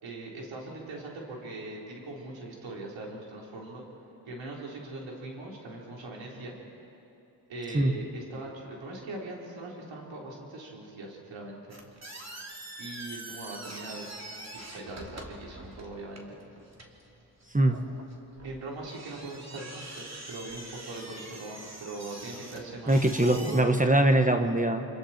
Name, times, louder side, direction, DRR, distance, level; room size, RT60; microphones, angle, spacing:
voice 1, 0.0-3.8 4.2-6.5 7.5-11.8 12.8-14.1 14.5-16.4 18.4-23.7, right 2 dB, 90° right, -2 dB, 4.1 m, -41 dB
sound 1, 11.7-23.6, right 2 dB, 35° right, 3.2 m, -45 dB
voice 2, 22.9-24.9, right 1 dB, 20° right, 5 dB, 1.4 m, -22 dB
27.5 x 27.0 x 4.5 m, 2.9 s
cardioid pair, 65°, 44 cm